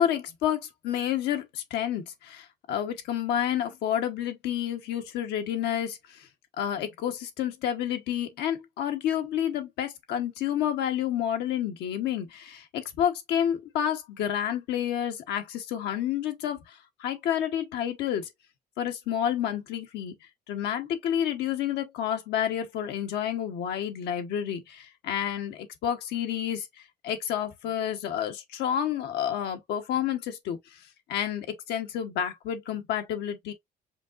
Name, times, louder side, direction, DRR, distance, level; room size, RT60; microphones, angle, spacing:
voice 1, 0.0-6.3 6.6-18.3 18.8-20.1 20.5-30.8 31.1-33.5, left 10 dB, 80° left, 1.0 m, -30 dB
5.1 x 2.7 x 2.5 m
cardioid pair, 110°, 17 cm